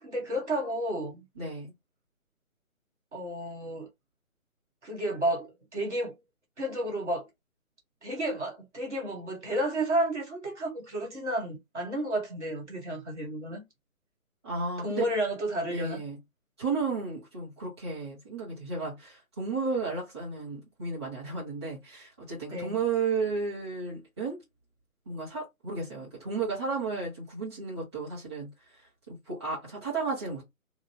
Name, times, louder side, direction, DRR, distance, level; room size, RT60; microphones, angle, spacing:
voice 1, 0.0-1.2 3.1-3.9 4.8-6.2 6.6-7.3 8.0-13.6 14.8-16.0 22.5-22.8, right 1 dB, 50° right, 1.2 m, -31 dB
voice 2, 1.3-1.7 14.4-15.1 15.7-16.2 16.6-24.4 25.0-30.4, right 4 dB, 20° right, 1.5 m, -33 dB
3.6 x 2.1 x 2.7 m
hypercardioid pair, 175°, 43 cm